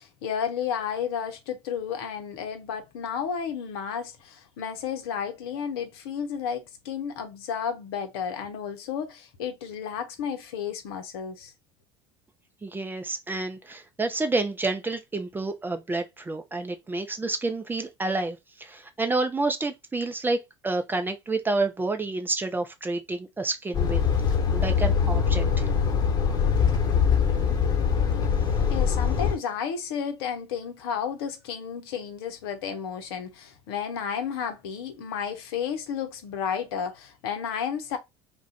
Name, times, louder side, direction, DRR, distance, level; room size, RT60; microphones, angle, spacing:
voice 1, 0.0-11.5 28.7-38.0, left 7 dB, 65° left, 0.7 m, -32 dB
voice 2, 12.6-24.0 24.5-25.7, right 3 dB, 15° right, 0.6 m, -29 dB
Truck, 23.7-29.3, left 6 dB, 30° left, 1.2 m, -23 dB
2.4 x 2.2 x 4.0 m
figure-of-eight pair, 65°, 14 cm